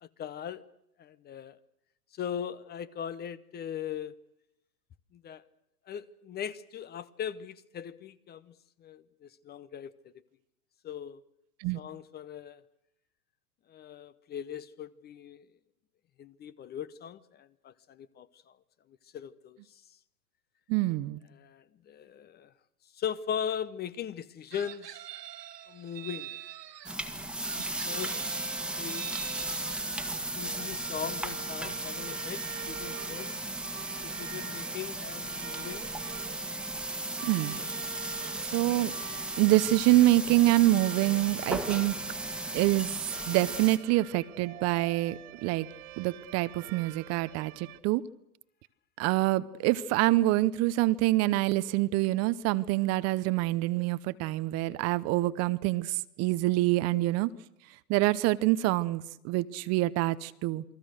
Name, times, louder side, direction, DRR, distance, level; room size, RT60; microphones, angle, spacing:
voice 1, 0.0-0.6 1.0-1.6 2.1-4.1 5.1-5.4 5.9-8.5 8.8-9.9 10.8-11.2 11.7-12.6 13.7-15.4 16.2-18.5 19.1-19.6 21.4-22.5 22.9-25.0 25.7-26.3 27.8-28.2 28.8-29.2 30.3-33.4 34.0-35.9, left 8 dB, 20° left, 0.9 m, -39 dB
voice 2, 20.7-21.2 37.2-37.6 38.4-38.9 39.4-41.9 42.5-45.7 46.0-48.0 49.0-57.3 57.9-60.6, right 17 dB, 30° right, 0.8 m, -26 dB
Chicken rooster, 24.5-26.9 27.4-29.9, right 13 dB, 75° right, 1.8 m, -45 dB
sound 1, 26.8-43.8, right 1 dB, ahead, 1.7 m, -36 dB
sound 2, 27.9-47.8, right 15 dB, 60° right, 1.8 m, -46 dB
28.5 x 22.0 x 6.5 m
hypercardioid pair, 120°, 49 cm